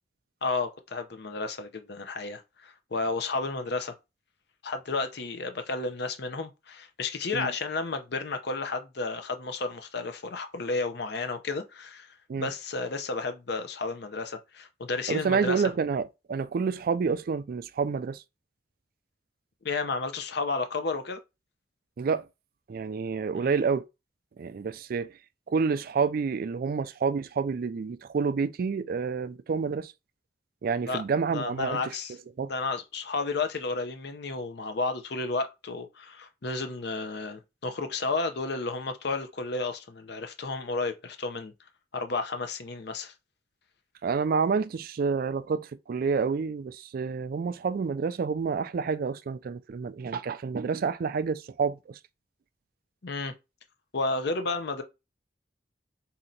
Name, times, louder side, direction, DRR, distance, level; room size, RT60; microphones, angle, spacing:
voice 1, 0.4-3.9 4.6-12.1 12.4-15.7 19.6-21.2 23.3-23.5 30.8-31.0 31.3-32.1 32.5-41.5 41.9-43.1 53.0-53.3 53.9-54.8, left 3 dB, 65° left, 0.7 m, -32 dB
voice 2, 15.1-18.2 22.0-22.2 22.7-23.8 24.4-25.1 25.5-29.9 30.6-31.8 32.4-32.5 44.0-52.0, right 5 dB, 55° right, 0.3 m, -28 dB
4.3 x 2.8 x 3.8 m
head